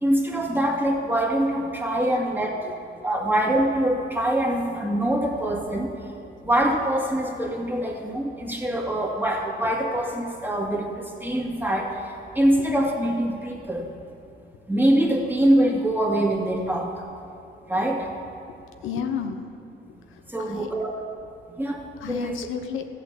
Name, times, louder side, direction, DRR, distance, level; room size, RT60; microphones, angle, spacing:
voice 1, 0.0-2.7 3.0-5.9 6.4-10.8 11.2-12.0 12.4-13.9 14.7-16.9 17.7-18.1 20.3-21.0 21.6-21.8 22.1-22.4, right 1 dB, 10° right, 0 dB, 2.2 m, -24 dB
voice 2, 18.8-19.4 19.9-20.7 22.0-22.9, left 7 dB, 85° left, 6 dB, 1.0 m, -32 dB
14.5 x 8.2 x 7.6 m, 2.8 s
cardioid pair, 90°, 20 cm